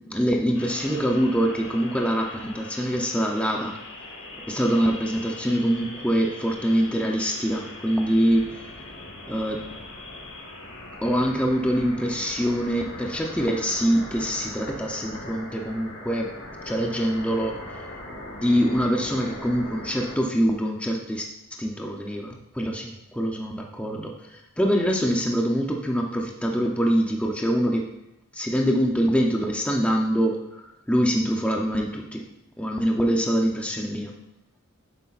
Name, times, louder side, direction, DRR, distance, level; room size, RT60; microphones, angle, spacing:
voice 1, 0.0-3.8 4.5-8.6 9.3-9.7 11.0-16.3 16.6-17.8 18.4-21.3 21.6-27.9 28.3-32.2 32.6-34.1, equal, 5° left, 0 dB, 0.7 m, -24 dB
sound 1, 0.5-20.2, left 2 dB, 55° left, 1.7 m, -40 dB
9.7 x 8.0 x 2.5 m, 0.84 s
head